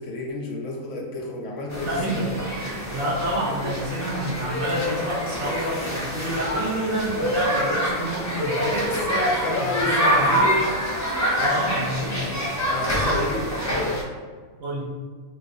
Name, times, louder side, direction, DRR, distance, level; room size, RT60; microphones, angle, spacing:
voice 1, 0.0-2.2 8.8-10.6 12.7-14.0, left 1 dB, 70° left, 0 dB, 0.8 m, -29 dB
sound 1, 1.7-14.0, equal, 25° left, 0.4 m, -26 dB
voice 2, 1.8-8.9 9.8-10.5 11.4-12.4 12.7-13.1 14.6-14.8, right 1 dB, 85° right, -4 dB, 1.2 m, -28 dB
3.9 x 2.4 x 2.6 m, 1.5 s
omnidirectional pair, 1.4 m